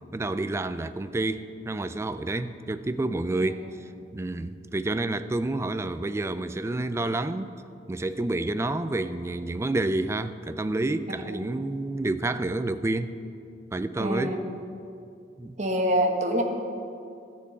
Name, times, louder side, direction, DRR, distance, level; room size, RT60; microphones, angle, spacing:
voice 1, 0.1-7.5 7.9-13.2 13.7-14.4 15.4-15.6, right 2 dB, 15° right, 11 dB, 0.3 m, -29 dB
voice 2, 13.9-14.4 15.6-16.4, equal, 45° right, 3 dB, 1.1 m, -26 dB
13.0 x 4.5 x 8.2 m, 2.5 s
head